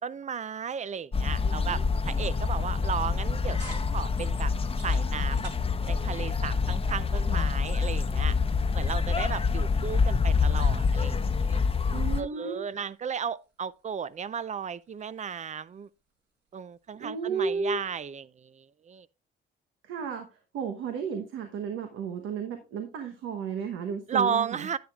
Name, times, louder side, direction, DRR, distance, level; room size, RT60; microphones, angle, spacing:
voice 1, 0.0-4.5 4.8-5.5 5.9-8.4 8.7-11.6 12.2-15.9 16.5-19.1 24.1-24.8, right 7 dB, 35° right, 0.5 m, -34 dB
sound 1, 1.1-12.2, left 5 dB, 30° left, 0.8 m, -26 dB
sound 2, 3.0-18.1, right 3 dB, 65° right, 5.7 m, -58 dB
voice 2, 11.9-12.6 17.0-17.8 19.8-20.3 20.5-24.7, right 5 dB, 85° right, 1.2 m, -33 dB
10.0 x 9.7 x 2.4 m
cardioid pair, 90°, 20 cm